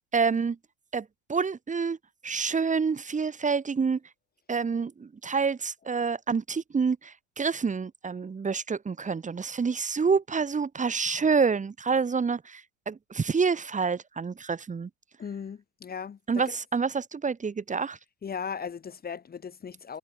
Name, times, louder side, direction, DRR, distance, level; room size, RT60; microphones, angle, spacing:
voice 1, 0.1-0.6 0.9-2.0 2.2-4.0 4.5-14.9 16.3-18.0, right 5 dB, 20° right, 2.4 m, -27 dB
voice 2, 15.2-16.6 18.2-20.0, left 6 dB, 25° left, 1.9 m, -37 dB
hypercardioid pair, 95°, 36 cm